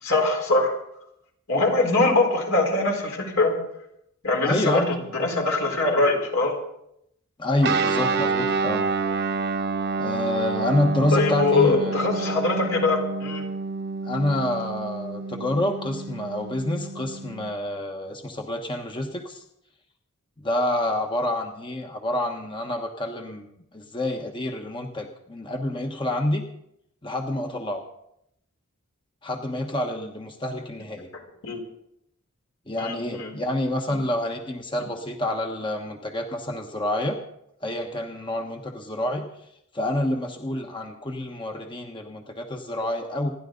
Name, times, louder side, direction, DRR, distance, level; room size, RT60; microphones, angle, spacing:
voice 1, 0.0-0.8 1.5-3.5 4.2-6.5 11.1-13.4 31.4-31.6 32.8-33.3 33.9-34.0, left 2 dB, 70° left, 1 dB, 4.2 m, -22 dB
voice 2, 4.4-4.8 7.4-8.9 10.0-12.0 14.0-19.4 20.4-26.5 27.0-27.8 29.2-31.1 32.7-37.2 37.6-39.3 39.7-43.3, left 1 dB, 25° left, 3 dB, 1.2 m, -28 dB
Guitar, 7.6-17.5, right 4 dB, 50° right, 1.1 m, -28 dB
28.0 x 11.0 x 3.9 m, 0.76 s
head